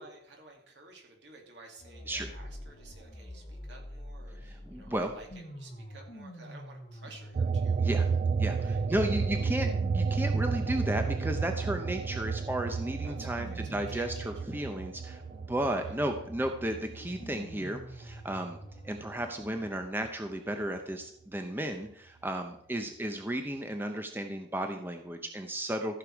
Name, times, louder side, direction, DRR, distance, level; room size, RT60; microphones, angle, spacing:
voice 1, 0.0-7.8 8.6-9.5 13.0-14.6 15.8-16.0, right 2 dB, 65° right, 1 dB, 2.6 m, -53 dB
sound 1, 1.8-19.8, equal, 35° left, 3.1 m, -47 dB
voice 2, 4.4-5.1 7.8-8.1 8.4-8.6 8.9-15.2 15.5-18.6 18.8-26.0, right 1 dB, 10° right, 5 dB, 0.8 m, -34 dB
sound 2, 7.3-18.2 18.6-20.1, right 5 dB, 40° right, 0.3 m, -32 dB
14.5 x 6.8 x 4.7 m, 0.68 s
head